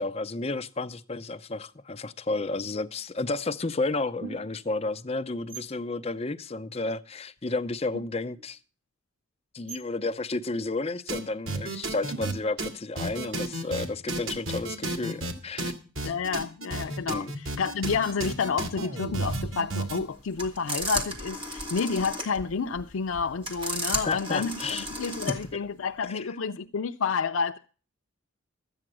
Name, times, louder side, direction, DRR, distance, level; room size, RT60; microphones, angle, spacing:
voice 1, 0.0-8.6 9.5-15.7 16.0-16.1 17.1-17.3 24.0-24.9 26.1-26.2, left 3 dB, 30° left, 0.6 m, -32 dB
sound 1, 3.2-3.5 4.2-4.7 5.4-5.8 7.4-7.5 7.7-8.5 9.7-10.0 12.1-12.6, right 5 dB, 65° right, 1.4 m, -43 dB
sound 2, 11.1-11.2 11.5-12.3 12.6-12.7 13.0-15.3 15.6-20.0, right 2 dB, 80° right, 2.3 m, -32 dB
voice 2, 16.0-27.6, left 5 dB, 80° left, 0.5 m, -30 dB
sound 3, 19.6-25.5, right 1 dB, 25° right, 2.2 m, -34 dB
13.0 x 8.9 x 6.1 m
head